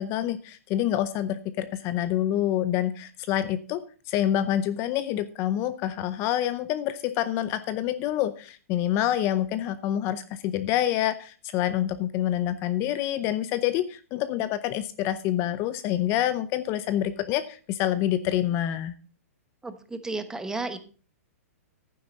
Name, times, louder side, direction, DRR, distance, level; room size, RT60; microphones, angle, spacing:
voice 1, 0.0-18.9, left 12 dB, 30° left, 13 dB, 0.6 m, -27 dB
voice 2, 19.6-20.8, right 3 dB, 5° right, 10 dB, 1.0 m, -33 dB
11.5 x 9.5 x 4.0 m, 0.38 s
hypercardioid pair, 145°, 8 cm